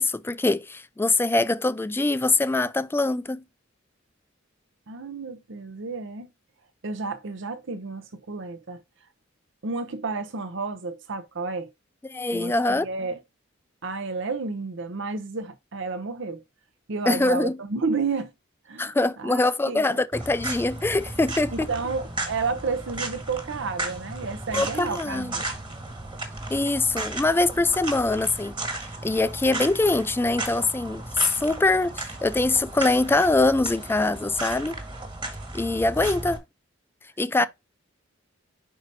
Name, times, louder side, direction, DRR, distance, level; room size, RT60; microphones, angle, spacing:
voice 1, 0.0-3.4 12.0-12.9 17.1-17.6 18.8-21.7 24.5-25.3 26.5-28.6 29.0-34.7 35.5-36.4 37.2-37.5, left 2 dB, 10° left, 0.3 m, -23 dB
voice 2, 4.9-6.3 6.8-8.8 9.6-11.7 12.3-13.2 13.8-16.4 16.9-18.3 18.7-20.0 21.5-25.4 37.4-37.5, right 4 dB, 65° right, 0.7 m, -31 dB
sound 1, 20.1-36.4, right 2 dB, 25° right, 1.6 m, -35 dB
5.4 x 4.8 x 4.0 m
head